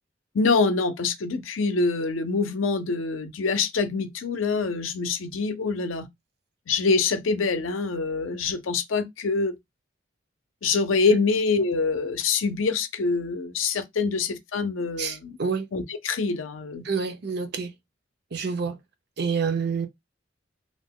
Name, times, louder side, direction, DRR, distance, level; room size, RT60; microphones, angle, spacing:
voice 1, 0.3-6.1 6.7-9.5 10.6-15.4 15.7-16.8, left 4 dB, 85° left, 0.5 m, -25 dB
voice 2, 15.0-15.7 16.8-17.7 18.3-18.8 19.2-19.9, right 5 dB, 55° right, 0.5 m, -27 dB
2.5 x 2.1 x 3.5 m
head